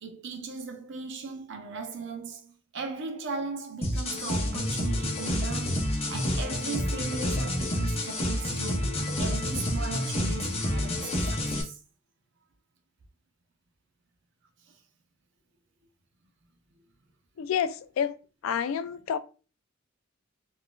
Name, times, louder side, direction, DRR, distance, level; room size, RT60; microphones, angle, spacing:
voice 1, 0.0-11.8, right 4 dB, 60° right, 0.6 m, -38 dB
sound 1, 3.8-11.6, left 1 dB, 30° left, 0.6 m, -29 dB
voice 2, 17.4-18.1 18.4-19.2, left 8 dB, 75° left, 0.3 m, -28 dB
3.9 x 2.4 x 2.2 m
head